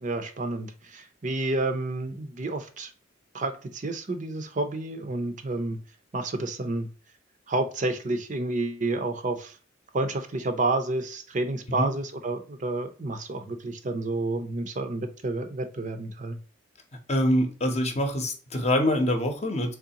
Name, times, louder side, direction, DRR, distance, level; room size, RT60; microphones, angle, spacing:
voice 1, 0.0-2.9 3.3-5.8 6.1-6.9 7.5-9.6 9.9-16.4, right 2 dB, 40° right, 0.6 m, -30 dB
voice 2, 17.1-19.7, left 1 dB, 35° left, 0.8 m, -25 dB
3.7 x 3.2 x 2.8 m
head